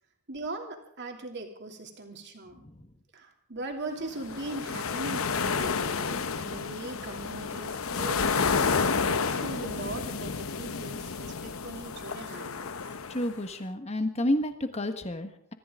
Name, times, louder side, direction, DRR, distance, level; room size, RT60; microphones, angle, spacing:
voice 1, 0.3-2.6 3.1-12.8, right 2 dB, 55° right, 3 dB, 2.9 m, -40 dB
sound 1, 4.1-13.4, left 5 dB, 70° left, 0.8 m, -30 dB
voice 2, 13.1-15.5, left 1 dB, 30° left, 8 dB, 1.5 m, -30 dB
24.5 x 14.5 x 3.8 m, 0.63 s
head